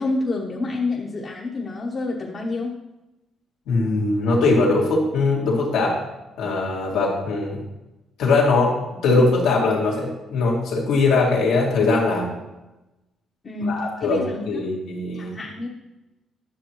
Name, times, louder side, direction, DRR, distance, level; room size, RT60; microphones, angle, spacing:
voice 1, 0.0-2.8 13.4-14.7 15.1-15.7, left 3 dB, 40° left, -2 dB, 1.0 m, -28 dB
voice 2, 3.7-6.0 6.4-7.6 8.2-8.8 9.0-12.3 13.7-15.4, left 3 dB, 90° left, -3 dB, 2.2 m, -21 dB
10.5 x 6.6 x 3.0 m, 1.0 s
cardioid pair, 90°, 0 cm